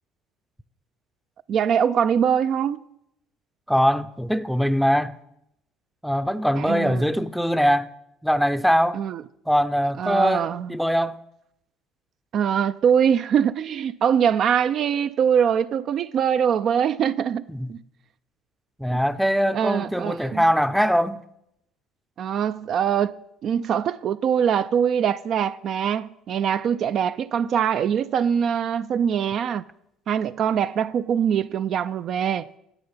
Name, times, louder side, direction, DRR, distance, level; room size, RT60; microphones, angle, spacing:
voice 1, 1.5-2.8 6.6-7.0 8.9-9.2 10.0-10.7 12.3-17.8 19.5-20.4 22.2-23.2 23.4-29.6 30.1-32.5, right 8 dB, 55° right, 0.3 m, -23 dB
voice 2, 3.7-5.2 6.0-7.9 8.2-9.0 9.5-11.2 17.5-17.7 18.8-21.2, equal, ahead, 0.5 m, -22 dB
9.7 x 8.0 x 5.5 m
supercardioid pair, 75°, 0 cm